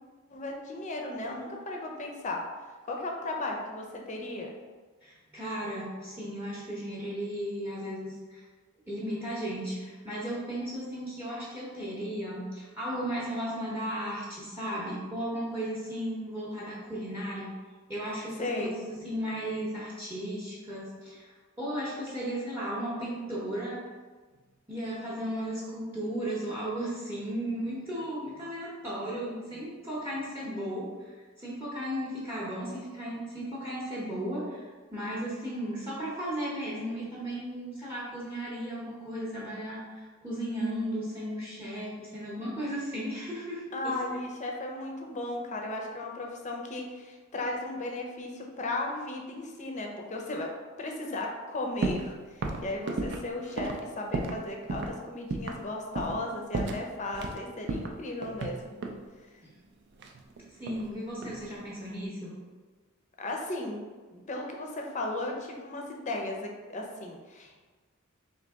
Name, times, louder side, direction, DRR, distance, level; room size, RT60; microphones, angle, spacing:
voice 1, 0.3-2.5 2.9-4.5 18.4-18.7 43.7-50.5 50.8-58.8 59.3-59.4 63.2-63.8 64.1-67.6, left 2 dB, 35° left, 1 dB, 0.5 m, -35 dB
voice 2, 5.0-8.4 8.9-17.5 17.9-21.3 21.6-23.8 24.7-44.2 59.4-59.5 60.6-62.4, equal, 10° right, -7 dB, 0.7 m, -35 dB
sound 1, 51.8-52.1 52.4-54.4 54.7-54.9 55.3-55.6 56.0-56.2 56.5-57.4 57.7-59.0 60.0-60.9 61.2-61.6, right 3 dB, 55° right, 0.4 m, -33 dB
3.8 x 2.8 x 3.5 m, 1.4 s
head